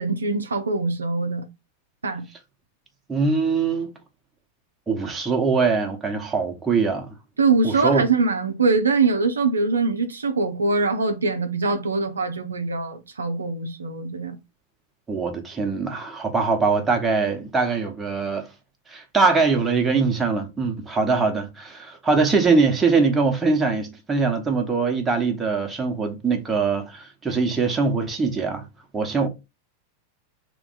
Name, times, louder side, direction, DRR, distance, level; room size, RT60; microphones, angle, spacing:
voice 1, 0.0-1.5 2.0-2.2 7.4-14.4, right 4 dB, 75° right, 0.6 m, -23 dB
voice 2, 3.1-3.9 4.9-7.1 7.6-8.0 15.1-18.5 18.9-28.7 28.9-29.3, right 4 dB, 15° right, 1.1 m, -22 dB
3.4 x 3.1 x 3.9 m
figure-of-eight pair, 90°, 0 cm